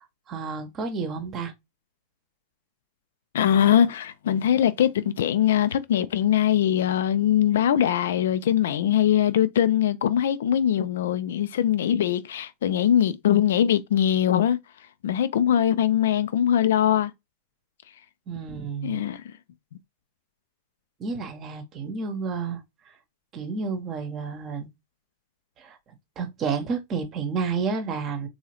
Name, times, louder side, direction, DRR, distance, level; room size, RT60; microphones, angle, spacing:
voice 1, 0.3-1.5 18.3-19.0 21.0-22.6 23.3-24.7 25.6-25.8 26.2-28.3, right 5 dB, 30° right, 0.8 m, -30 dB
voice 2, 3.3-14.6 15.0-17.1 18.8-19.3, left 10 dB, 60° left, 0.3 m, -22 dB
3.8 x 2.7 x 2.9 m
figure-of-eight pair, 90°, 0 cm